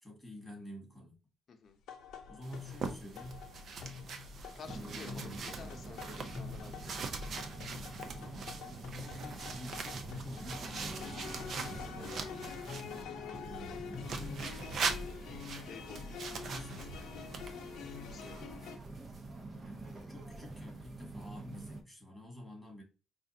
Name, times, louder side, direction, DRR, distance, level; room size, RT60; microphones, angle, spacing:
voice 1, 0.0-1.1 2.3-3.5 4.7-5.5 8.2-8.6 8.9-11.9 13.4-15.0 16.3-17.0 17.3-17.7 19.6-22.8, equal, ahead, 2.0 m, -49 dB
voice 2, 1.5-1.8 4.5-7.1 12.2-12.6 15.7-16.2 17.9-18.8 19.2-19.3 19.8-20.2, left 5 dB, 50° left, 0.7 m, -53 dB
sound 1, 1.9-18.8, left 7 dB, 80° left, 0.7 m, -47 dB
sound 2, 2.4-13.0 14.0-18.4, right 4 dB, 60° right, 0.6 m, -42 dB
sound 3, 4.6-21.8, right 3 dB, 35° right, 0.9 m, -47 dB
4.9 x 2.5 x 2.8 m
cardioid pair, 90°, 0 cm